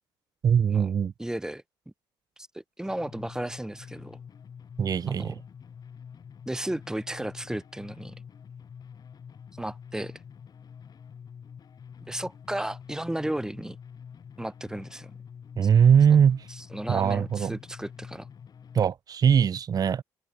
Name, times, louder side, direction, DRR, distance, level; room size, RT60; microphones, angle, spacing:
voice 1, 0.4-1.1 4.8-5.4 15.6-16.5 16.9-17.6 18.7-20.0, right 7 dB, 45° right, 0.9 m, -21 dB
voice 2, 1.2-1.6 2.4-4.2 5.1-5.3 6.5-8.1 9.6-10.2 12.0-13.8 14.4-15.2 16.7-18.3, right 1 dB, 5° right, 1.6 m, -34 dB
sound 1, 2.9-18.9, left 7 dB, 45° left, 5.3 m, -47 dB
supercardioid pair, 80°, 9 cm